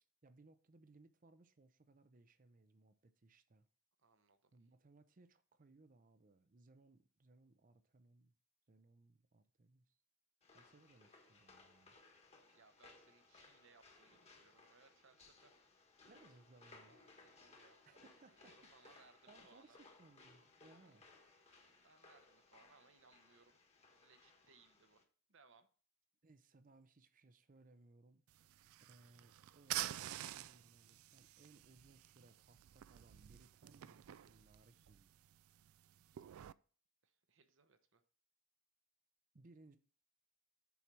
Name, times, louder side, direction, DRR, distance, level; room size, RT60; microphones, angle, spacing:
voice 1, 0.0-3.7 4.5-8.3 8.7-10.0 10.5-12.0 16.0-17.0 17.8-21.1 26.2-35.1 36.1-36.3 39.3-39.8, right 3 dB, 40° right, 0.6 m, -66 dB
voice 2, 4.0-4.5 12.5-15.5 16.9-18.0 18.4-19.8 20.7-20.9 21.5-23.6 24.0-25.7 34.7-34.9 37.0-38.0, right 4 dB, 60° right, 0.9 m, -69 dB
sound 1, 10.4-25.0, left 3 dB, 30° left, 1.3 m, -64 dB
sound 2, 28.3-36.5, right 14 dB, 80° right, 0.3 m, -49 dB
7.1 x 4.9 x 6.0 m
head